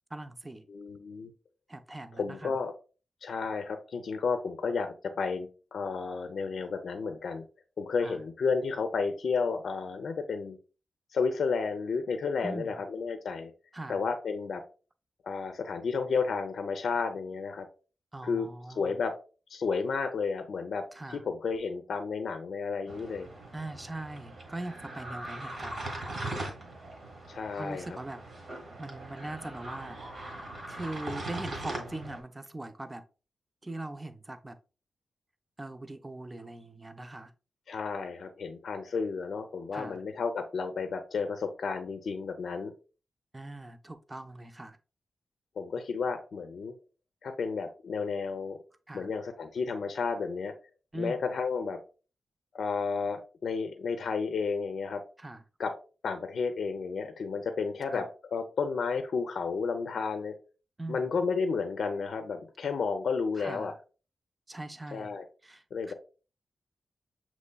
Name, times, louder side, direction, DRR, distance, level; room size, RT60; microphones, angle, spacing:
voice 1, 0.1-0.7 1.7-2.5 8.0-8.2 12.4-12.8 13.7-14.0 18.1-19.0 20.9-21.2 23.5-26.4 27.6-28.2 28.8-30.3 30.7-33.0 33.6-34.6 35.6-37.3 39.7-40.0 43.3-44.8 48.9-49.1 50.9-51.2 55.2-55.4 57.9-58.0 60.8-61.1 63.4-63.7 64.5-65.1 65.4-65.9, right 2 dB, 15° right, 0.4 m, -41 dB
voice 2, 0.7-1.3 2.1-2.7 3.2-7.4 7.8-10.6 11.1-13.5 13.9-14.6 15.2-17.7 18.2-18.5 18.7-19.1 19.5-20.8 21.1-23.3 27.3-28.0 37.7-42.7 45.6-46.7 47.2-48.6 48.9-50.5 50.9-51.8 52.5-55.0 55.6-55.7 56.0-60.3 60.9-63.7 64.9-65.2 65.7-65.9, left 5 dB, 75° left, 0.5 m, -32 dB
sound 1, 22.9-32.2, right 1 dB, 50° right, 1.2 m, -40 dB
6.5 x 3.0 x 2.2 m
wide cardioid pair, 135°, 0 cm